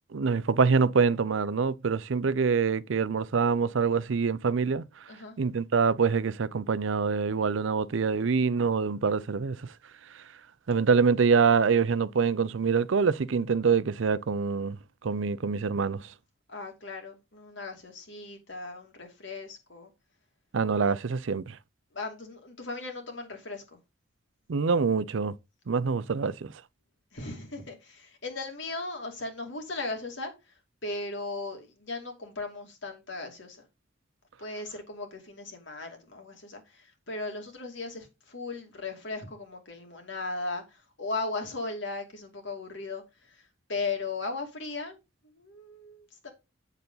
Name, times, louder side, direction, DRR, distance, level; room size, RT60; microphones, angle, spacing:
voice 1, 0.1-4.8 5.4-9.6 10.7-14.8 15.0-16.0 20.5-21.5 24.5-25.3 25.7-26.5, right 5 dB, 75° right, 0.5 m, -25 dB
voice 2, 16.5-19.9 21.9-23.8 27.1-30.3 30.8-33.6 34.4-45.0 45.3-46.3, left 3 dB, 65° left, 2.5 m, -37 dB
8.1 x 6.8 x 3.9 m
head